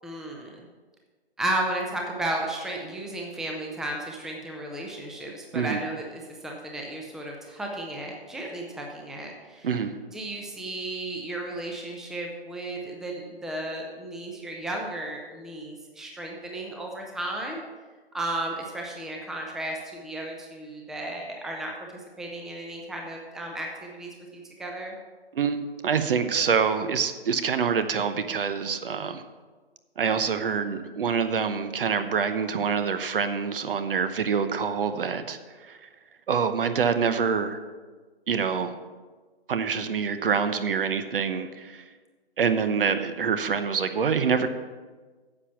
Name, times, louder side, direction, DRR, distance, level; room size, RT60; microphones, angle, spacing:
voice 1, 0.0-0.6 1.4-9.7 10.1-17.6 18.1-24.9, right 1 dB, ahead, 0 dB, 0.7 m, -34 dB
voice 2, 9.6-9.9 25.3-29.2 30.0-35.9 36.3-37.6 38.3-38.8 39.5-41.8 42.4-44.5, right 6 dB, 60° right, 10 dB, 0.9 m, -26 dB
9.9 x 7.2 x 5.8 m, 1.4 s
figure-of-eight pair, 130°, 32 cm